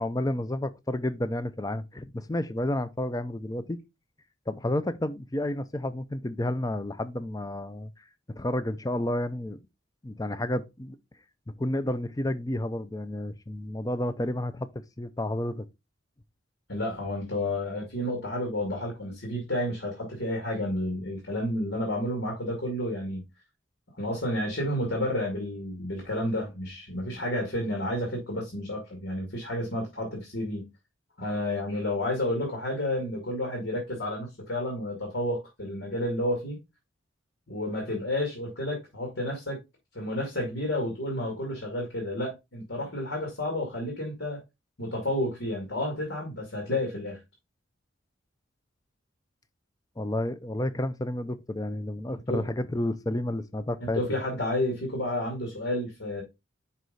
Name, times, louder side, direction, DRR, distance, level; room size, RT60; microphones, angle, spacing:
voice 1, 0.0-3.8 4.5-7.9 8.3-9.6 10.0-11.0 11.5-14.7 15.0-15.6 50.0-54.0, left 1 dB, 20° left, 0.5 m, -31 dB
voice 2, 16.7-23.2 24.0-30.7 31.2-36.6 37.5-39.6 39.9-44.4 44.8-47.2 52.1-52.4 53.9-56.2, left 1 dB, 70° left, 2.3 m, -31 dB
5.6 x 4.8 x 3.9 m
head